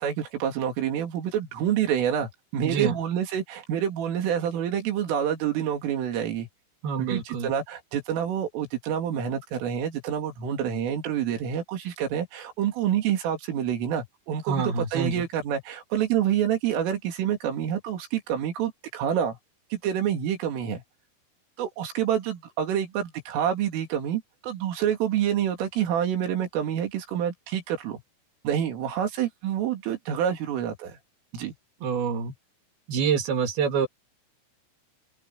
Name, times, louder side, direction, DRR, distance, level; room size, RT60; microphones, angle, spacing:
voice 1, 0.0-6.5 7.0-19.4 19.7-20.8 21.6-28.0 28.5-31.0 31.3-31.5, right 9 dB, 85° right, 5.6 m, -27 dB
voice 2, 2.6-3.0 6.8-7.5 14.5-15.2 31.8-32.3 32.9-33.9, right 6 dB, 60° right, 3.6 m, -26 dB
open air
omnidirectional pair, 5.6 m